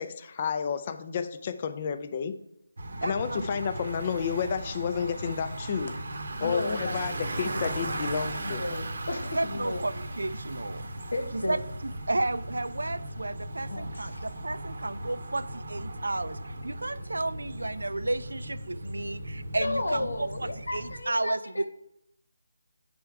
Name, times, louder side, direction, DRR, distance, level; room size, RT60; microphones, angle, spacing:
voice 1, 0.0-2.4 3.0-5.9 6.4-8.6, left 6 dB, 25° left, 9 dB, 0.4 m, -31 dB
Bicycle, 2.8-21.0, right 1 dB, 55° right, 0.8 m, -37 dB
voice 2, 2.9-3.4 9.4-10.9 11.3-11.6 12.1-21.7, right 2 dB, 85° right, 14 dB, 0.4 m, -32 dB
voice 3, 6.4-7.0 7.4-7.6 8.4-9.9 11.1-11.6 13.7-14.2 19.5-21.7, left 2 dB, 80° left, 7 dB, 1.1 m, -33 dB
9.4 x 3.5 x 4.7 m, 0.80 s
figure-of-eight pair, 170°, 0 cm